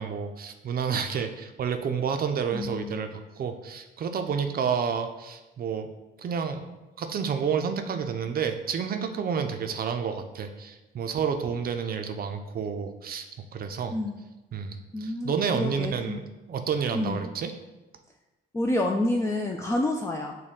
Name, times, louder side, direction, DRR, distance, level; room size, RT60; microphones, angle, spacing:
voice 1, 0.0-5.9 6.2-13.3 13.5-14.0 14.5-16.2 16.5-17.5, right 6 dB, 50° right, 7 dB, 0.5 m, -30 dB
voice 2, 2.5-3.1 13.9-14.2 14.9-16.3 16.9-17.3 18.5-20.3, left 1 dB, 15° left, 1 dB, 0.3 m, -29 dB
6.4 x 2.2 x 3.6 m, 1.1 s
cardioid pair, 90°, 20 cm